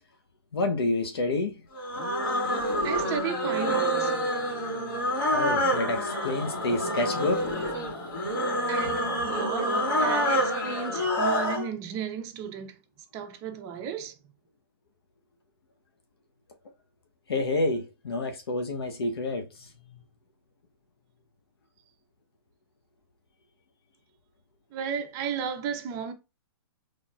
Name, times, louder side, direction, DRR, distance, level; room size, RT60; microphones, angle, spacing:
voice 1, 0.5-1.6 3.7-3.8 5.3-7.5 8.8-8.9 17.3-19.7, left 2 dB, 85° left, 0.8 m, -28 dB
sound 1, 1.7-11.7, equal, 60° left, 2.1 m, -27 dB
voice 2, 2.8-4.1 8.7-12.8 13.1-14.2 24.7-26.1, right 7 dB, 25° right, 0.6 m, -34 dB
4.2 x 3.2 x 2.3 m
hypercardioid pair, 150°, 13 cm